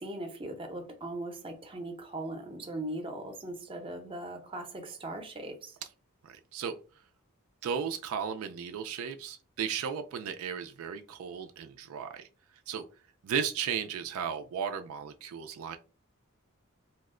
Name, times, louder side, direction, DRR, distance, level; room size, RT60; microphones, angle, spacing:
voice 1, 0.0-5.8, right 1 dB, 25° right, 0.6 m, -39 dB
voice 2, 6.2-6.8 7.6-12.3 12.7-12.9 13.2-15.8, right 7 dB, 70° right, 0.3 m, -35 dB
2.8 x 2.1 x 3.6 m
head